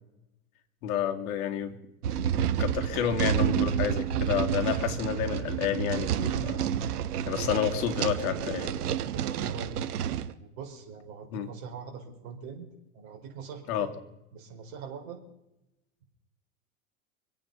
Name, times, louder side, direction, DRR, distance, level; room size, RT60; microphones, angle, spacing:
voice 1, 0.8-1.8 2.2-6.6 7.3-8.7 11.3-11.5 13.7-13.9, left 10 dB, 65° left, 5 dB, 2.6 m, -30 dB
sound 1, 2.0-10.3, right 9 dB, 85° right, 1.1 m, -29 dB
voice 2, 7.3-7.7 9.1-9.9 10.4-12.7 12.9-13.9 14.3-15.2, right 6 dB, 60° right, 2 dB, 5.1 m, -42 dB
25.5 x 8.8 x 5.5 m, 0.89 s
hypercardioid pair, 100°, 45 cm